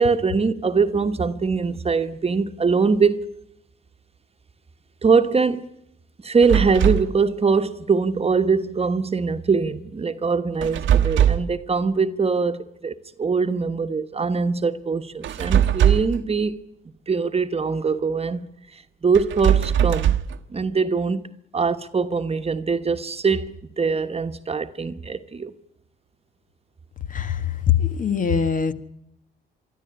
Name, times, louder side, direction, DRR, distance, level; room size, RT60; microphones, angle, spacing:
voice 1, 0.0-3.3 5.0-5.7 6.2-16.6 17.1-20.2 20.5-25.5, right 5 dB, 30° right, 1.3 m, -22 dB
sound 1, 6.4-7.1 10.6-11.6 15.2-16.2 19.1-20.4, right 10 dB, 75° right, 1.2 m, -20 dB
voice 2, 27.1-28.7, left 8 dB, 40° left, 1.4 m, -22 dB
24.0 x 13.0 x 9.9 m
cardioid pair, 90°, 20 cm